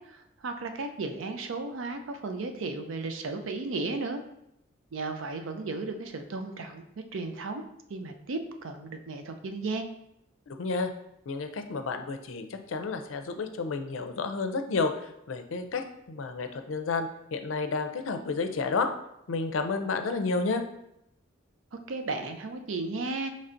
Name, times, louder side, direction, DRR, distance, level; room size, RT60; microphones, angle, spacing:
voice 1, 0.1-4.2 4.9-6.8 7.1-7.6 7.9-9.8 21.7-23.3, right 3 dB, 85° right, 6 dB, 0.5 m, -34 dB
voice 2, 10.5-10.9 11.3-18.9 19.3-20.6, left 4 dB, 80° left, 7 dB, 0.5 m, -31 dB
5.5 x 3.1 x 2.5 m, 0.81 s
head